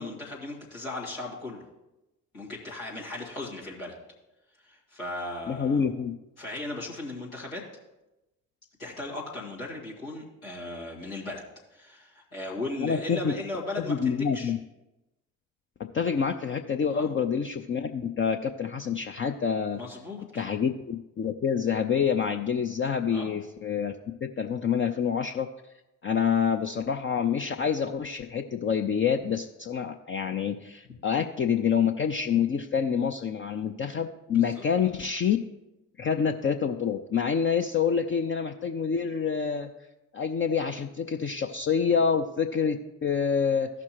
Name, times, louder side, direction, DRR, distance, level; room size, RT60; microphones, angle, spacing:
voice 1, 0.0-1.6 2.3-3.9 4.6-5.8 6.4-7.6 8.8-11.4 11.7-14.5 16.9-17.1 19.8-20.4 23.1-23.3 34.3-34.6, left 2 dB, 85° left, -5 dB, 1.9 m, -37 dB
voice 2, 5.5-6.1 12.8-13.3 13.9-14.6 15.8-19.8 20.4-23.9 24.2-25.5 26.0-35.4 36.0-39.7 40.1-43.7, left 7 dB, 30° left, 5 dB, 0.5 m, -27 dB
15.0 x 6.0 x 3.0 m, 0.97 s
figure-of-eight pair, 40°, 41 cm